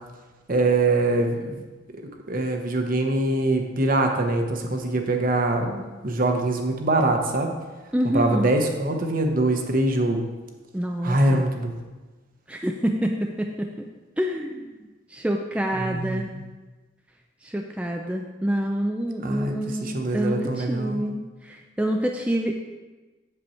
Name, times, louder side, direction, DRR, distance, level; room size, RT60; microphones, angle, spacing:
voice 1, 0.5-1.6 2.3-7.5 8.1-10.2 11.0-11.8 15.8-16.4 19.2-21.0, right 2 dB, 50° right, 4 dB, 1.0 m, -23 dB
voice 2, 7.9-8.5 10.7-11.4 12.5-13.7 14.2-14.7 15.1-16.3 17.4-22.5, equal, 5° right, 2 dB, 0.4 m, -27 dB
7.9 x 6.9 x 4.3 m, 1.2 s
head